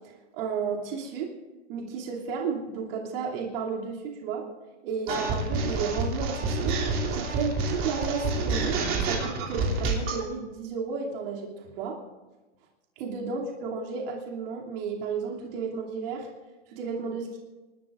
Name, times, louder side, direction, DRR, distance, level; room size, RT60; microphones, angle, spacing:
voice 1, 0.3-1.3 1.7-4.4 4.8-6.8 7.1-11.5 11.8-12.0 13.0-16.3 16.7-17.4, right 5 dB, 50° right, -2 dB, 2.9 m, -33 dB
sound 1, 5.1-10.2, right 3 dB, 35° right, 3.0 m, -28 dB
27.5 x 13.0 x 2.6 m, 1.2 s
hypercardioid pair, 140°, 36 cm